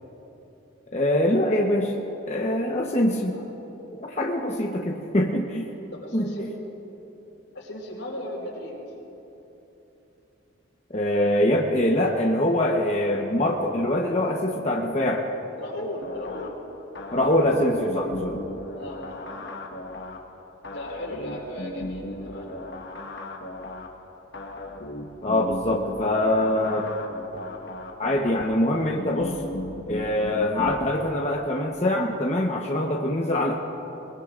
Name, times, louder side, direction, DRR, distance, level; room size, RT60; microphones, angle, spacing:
voice 1, 0.9-2.0 2.3-3.4 3.9-5.7 6.1-6.3 10.9-15.2 17.1-18.4 25.2-26.9 28.0-29.4 29.9-33.5, left 1 dB, 35° left, -1 dB, 1.0 m, -24 dB
voice 2, 5.9-6.5 7.5-8.9 15.5-16.6 18.7-19.5 20.7-22.5, left 1 dB, 85° left, -3 dB, 4.5 m, -36 dB
sound 1, 16.0-30.8, left 1 dB, 60° left, 1.4 m, -37 dB
24.5 x 21.5 x 2.5 m, 3.0 s
head